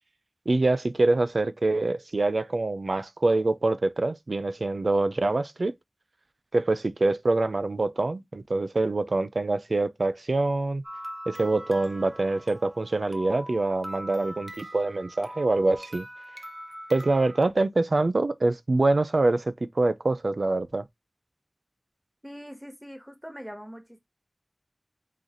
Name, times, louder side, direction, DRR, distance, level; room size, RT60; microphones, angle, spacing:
voice 1, 0.5-5.7 6.5-10.8 11.3-16.1 16.9-20.8, right 2 dB, 90° right, 0.5 m, -25 dB
sound 1, 10.8-17.4, equal, 25° right, 0.9 m, -42 dB
voice 2, 22.2-24.0, equal, ahead, 1.4 m, -42 dB
4.0 x 3.1 x 3.8 m
wide cardioid pair, 50°, 0 cm